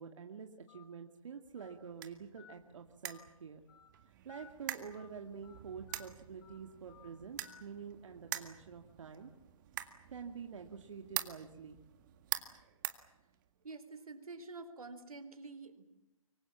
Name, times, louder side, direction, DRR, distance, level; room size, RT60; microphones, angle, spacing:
voice 1, 0.0-3.6 4.1-9.3 9.9-11.8, right 6 dB, 60° right, 4 dB, 2.3 m, -48 dB
Telephone, 0.7-0.8 1.6-1.7 2.4-2.5 3.0-3.3 3.7-3.9 4.3-4.5 4.9-5.1 5.4-5.6 5.9-6.1 6.4-6.6 6.9-7.1 7.4-7.6, left 9 dB, 40° left, 3.0 m, -58 dB
sound 1, 1.4-13.7, right 13 dB, 35° right, 1.9 m, -46 dB
voice 2, 13.6-15.8, right 3 dB, 85° right, 10 dB, 4.0 m, -48 dB
24.5 x 24.5 x 7.4 m, 0.93 s
hypercardioid pair, 145°, 18 cm